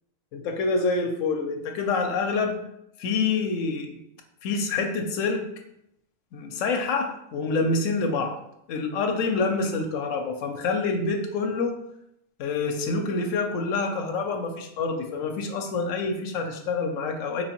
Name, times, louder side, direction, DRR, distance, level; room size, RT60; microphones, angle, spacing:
voice 1, 0.3-2.5 3.0-4.0 4.4-5.4 6.3-8.4 8.7-11.7 12.4-17.4, left 4 dB, 90° left, 3 dB, 1.0 m, -27 dB
4.5 x 3.1 x 2.9 m, 0.79 s
omnidirectional pair, 1.3 m